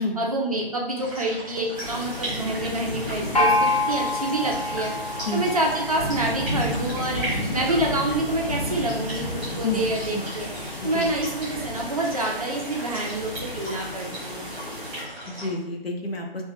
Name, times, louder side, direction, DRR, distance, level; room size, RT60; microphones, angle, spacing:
voice 1, 0.0-4.9 5.3-14.5, right 1 dB, 40° right, -1 dB, 0.4 m, -27 dB
sound 1, 1.0-15.5, right 1 dB, 10° right, 1.0 m, -38 dB
sound 2, 1.7-15.0, left 1 dB, 10° left, 0.6 m, -33 dB
Gong, 3.3-6.9, left 2 dB, 40° left, 0.7 m, -26 dB
voice 2, 14.9-16.4, left 2 dB, 75° left, 2 dB, 0.6 m, -29 dB
3.0 x 2.2 x 2.8 m, 0.87 s
figure-of-eight pair, 145°, 30 cm